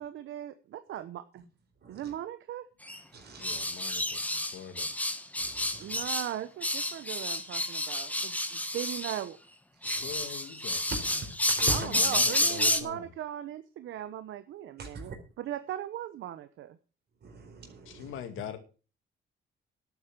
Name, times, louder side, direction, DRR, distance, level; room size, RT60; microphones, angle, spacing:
voice 1, 0.0-1.4 1.9-2.6 5.8-9.4 11.7-15.1 15.4-16.8, right 12 dB, 75° right, 1.0 m, -38 dB
voice 2, 1.8-2.1 3.1-3.6 5.4-6.1 9.8-10.1 10.9-11.9 14.8-15.2 17.2-18.2, right 3 dB, 55° right, 4.4 m, -41 dB
sound 1, 2.9-3.0 3.4-6.3 6.6-9.2 9.8-12.8, left 1 dB, 5° left, 1.6 m, -30 dB
voice 3, 3.4-4.9 10.0-11.2 11.4-13.1 17.9-18.6, left 9 dB, 90° left, 2.2 m, -43 dB
12.0 x 8.2 x 7.4 m
cardioid pair, 90°, 20 cm